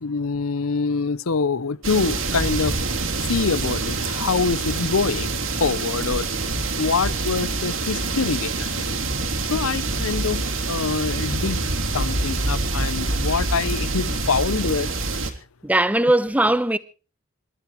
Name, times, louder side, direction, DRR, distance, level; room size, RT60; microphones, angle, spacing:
voice 1, 0.0-2.7 3.3-5.3 5.6-6.3 6.8-9.0 9.5-11.7 11.9-14.9, left 4 dB, 90° left, 0.7 m, -25 dB
sound 1, 1.8-15.3, right 3 dB, 75° right, 3.0 m, -26 dB
voice 2, 15.6-16.8, right 1 dB, 5° right, 0.9 m, -19 dB
27.5 x 13.0 x 3.1 m
head